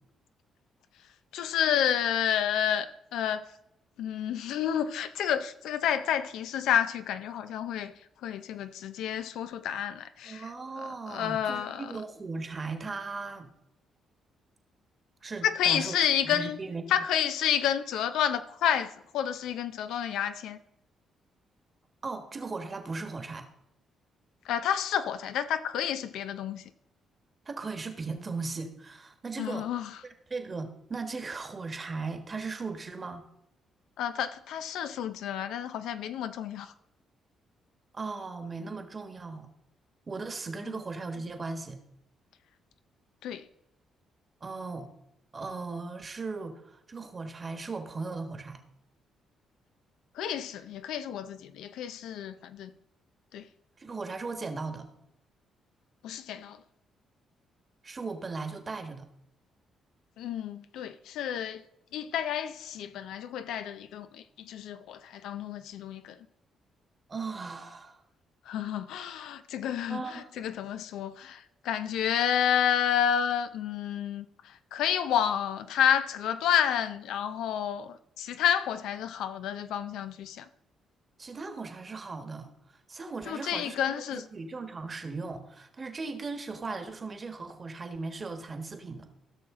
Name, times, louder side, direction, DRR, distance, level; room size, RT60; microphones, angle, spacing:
voice 1, 1.3-2.9 3.1-3.5 4.0-7.9 8.2-10.5 11.1-11.9 15.4-16.6 16.9-20.6 24.4-26.7 29.4-30.0 34.0-36.7 40.7-40.8 43.2-43.5 50.2-52.7 53.3-53.5 56.0-56.6 60.2-61.6 61.9-66.2 68.5-80.5 83.3-84.3, left 9 dB, 85° left, 0.5 m, -30 dB
voice 2, 10.2-13.5 15.2-16.0 16.2-17.0 22.0-23.5 27.4-29.7 30.3-33.2 37.9-39.5 40.1-41.8 44.4-44.9 45.3-48.6 53.8-54.9 57.8-59.1 67.1-68.0 69.9-70.3 81.2-82.5 82.9-89.1, right 4 dB, 35° right, 1.3 m, -37 dB
15.5 x 6.2 x 3.7 m
cardioid pair, 90°, 0 cm